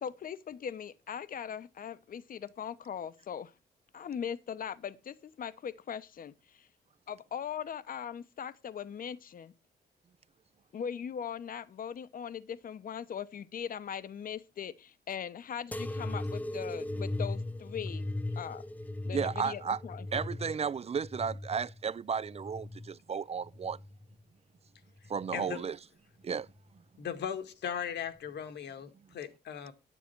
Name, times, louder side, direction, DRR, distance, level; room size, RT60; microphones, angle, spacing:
voice 1, 0.0-3.5 3.9-6.7 7.1-9.5 10.7-18.1 18.4-18.6 19.0-20.2, left 8 dB, 55° left, 0.9 m, -40 dB
sound 1, 15.7-22.9 23.4-24.2 25.0-25.5 26.5-26.6, left 1 dB, 10° left, 0.6 m, -38 dB
voice 2, 19.1-19.8 20.1-23.8 25.1-25.8 26.2-26.5, right 6 dB, 35° right, 0.5 m, -33 dB
voice 3, 25.3-25.6 27.0-29.7, left 8 dB, 80° left, 2.0 m, -38 dB
10.0 x 10.0 x 4.6 m
cardioid pair, 95°, 18 cm